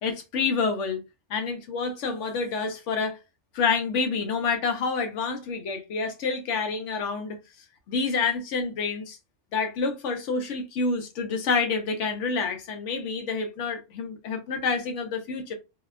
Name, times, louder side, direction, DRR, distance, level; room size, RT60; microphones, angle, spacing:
voice 1, 0.0-1.0 1.3-3.2 3.5-7.4 7.9-9.2 9.5-15.5, left 4 dB, 75° left, 1.0 m, -28 dB
2.7 x 2.1 x 2.4 m
omnidirectional pair, 1.3 m